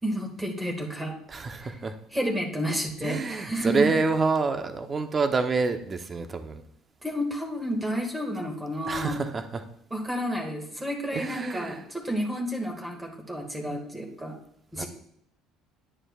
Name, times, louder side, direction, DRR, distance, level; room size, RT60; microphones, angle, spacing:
voice 1, 0.0-1.2 2.1-3.9 7.0-9.2 9.9-14.3 14.7-14.9, equal, 15° right, 1 dB, 1.9 m, -31 dB
voice 2, 1.3-2.0 3.0-6.6 8.9-9.6 11.1-11.8 14.7-14.8, right 4 dB, 30° right, 7 dB, 0.9 m, -27 dB
11.5 x 9.7 x 2.4 m, 0.70 s
supercardioid pair, 105°, 0 cm